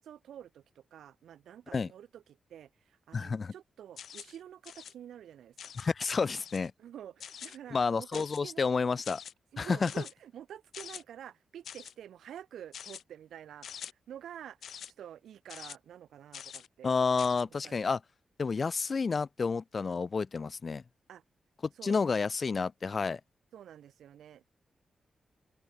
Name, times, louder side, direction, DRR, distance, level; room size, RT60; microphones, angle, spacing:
voice 1, 0.0-5.8 6.8-8.7 9.5-17.0 17.6-17.8 21.1-21.2 21.8-22.0 23.5-24.5, right 10 dB, 80° right, 3.7 m, -49 dB
voice 2, 3.1-3.5 5.8-6.7 7.7-9.2 9.6-9.9 16.8-18.0 18.4-20.8 21.8-23.2, left 4 dB, 50° left, 3.2 m, -30 dB
sound 1, 4.0-4.4 4.6-4.9 5.6-5.9 6.4-6.7 7.2-7.6 8.1-8.5 9.0-9.3 9.9-10.1 10.7-11.0 11.6-11.9 12.7-13.0 13.6-13.9 14.6-14.9 15.5-15.8 16.3-16.7 17.2-17.4, left 8 dB, 75° left, 1.1 m, -45 dB
open air
supercardioid pair, 45°, 0 cm